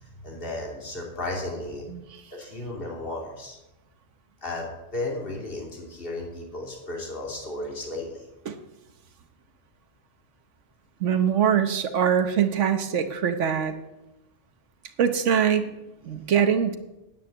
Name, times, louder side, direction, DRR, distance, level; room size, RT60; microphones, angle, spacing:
voice 1, 0.0-1.8 2.3-3.6 4.4-8.3, left 2 dB, 50° left, -1 dB, 3.0 m, -34 dB
voice 2, 11.0-13.8 15.0-15.7 16.0-16.8, right 8 dB, 80° right, 8 dB, 1.3 m, -23 dB
9.6 x 9.1 x 8.2 m, 0.96 s
omnidirectional pair, 1.2 m